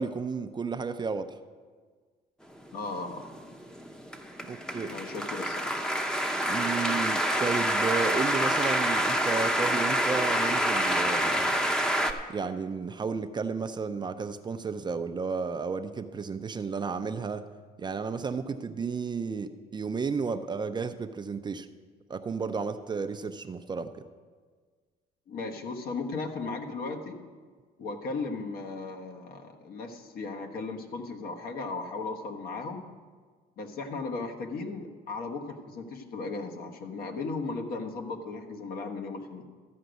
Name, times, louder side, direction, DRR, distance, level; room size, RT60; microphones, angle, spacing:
voice 1, 0.0-1.3 4.5-4.9 6.5-11.5 12.3-17.5 17.8-21.7 22.1-23.9, right 5 dB, 25° right, 9 dB, 0.5 m, -32 dB
voice 2, 2.7-3.3 4.9-5.8 25.3-27.2 27.8-32.9 33.6-39.4, left 3 dB, 60° left, 3 dB, 1.3 m, -36 dB
sound 1, 2.8-12.1, equal, 5° left, 0.8 m, -27 dB
13.0 x 5.1 x 8.1 m, 1.6 s
cardioid pair, 110°, 17 cm